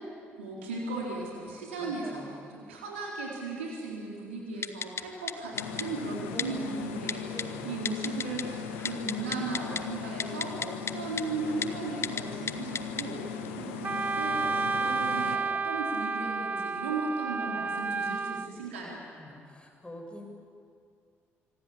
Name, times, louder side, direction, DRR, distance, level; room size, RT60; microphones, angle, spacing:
voice 1, 0.4-19.0, right 3 dB, 75° right, -2 dB, 3.9 m, -37 dB
voice 2, 1.1-2.5 6.3-7.0 7.3-7.8 13.5-13.9 18.0-18.9 19.2-20.3, equal, 15° left, 3 dB, 6.7 m, -46 dB
Typing, 4.6-5.0 5.3-5.4 5.6-5.8 6.4-6.5 7.1-7.4 7.9-8.4 8.7-9.8 10.2-10.9 11.2-11.3 11.6-11.7 12.0-12.2 12.5-13.0 13.4-13.5, left 6 dB, 40° left, 1.2 m, -32 dB
sound 1, 5.5-15.4, left 6 dB, 75° left, 1.6 m, -39 dB
Wind instrument woodwind instrument, 13.8-18.5, right 4 dB, 25° right, 0.6 m, -31 dB
25.5 x 25.0 x 8.8 m, 2.3 s
figure-of-eight pair, 45°, 7 cm